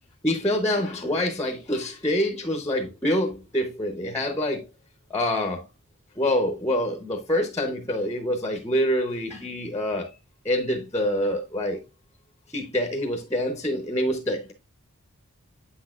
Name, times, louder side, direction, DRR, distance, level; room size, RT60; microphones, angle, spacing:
voice 1, 0.2-4.7 5.1-5.6 6.2-10.1 10.4-11.8 12.5-14.5, left 1 dB, 15° left, 0.7 m, -26 dB
8.0 x 6.2 x 2.4 m
head